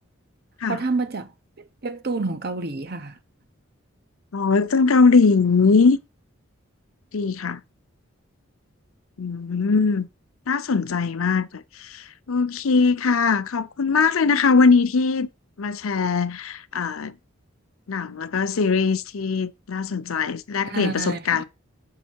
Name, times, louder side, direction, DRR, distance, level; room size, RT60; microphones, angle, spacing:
voice 1, 0.7-1.3 1.8-3.1 20.7-21.4, right 3 dB, 45° right, 0.9 m, -28 dB
voice 2, 4.3-6.0 7.1-7.6 9.2-10.1 10.5-15.3 15.6-17.1 17.9-21.4, left 4 dB, 85° left, 0.7 m, -21 dB
7.5 x 5.1 x 4.6 m
head